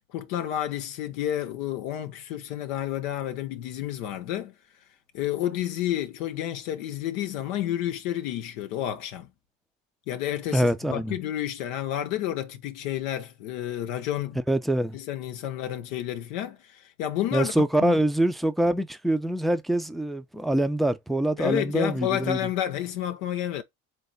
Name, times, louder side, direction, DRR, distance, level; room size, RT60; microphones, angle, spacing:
voice 1, 0.0-4.5 5.1-9.3 10.1-14.4 14.9-18.0 21.4-23.6, left 12 dB, 80° left, 0.7 m, -30 dB
voice 2, 10.5-11.1 14.5-15.0 17.3-22.4, right 1 dB, ahead, 0.4 m, -24 dB
3.4 x 3.4 x 3.9 m
hypercardioid pair, 65°, 40 cm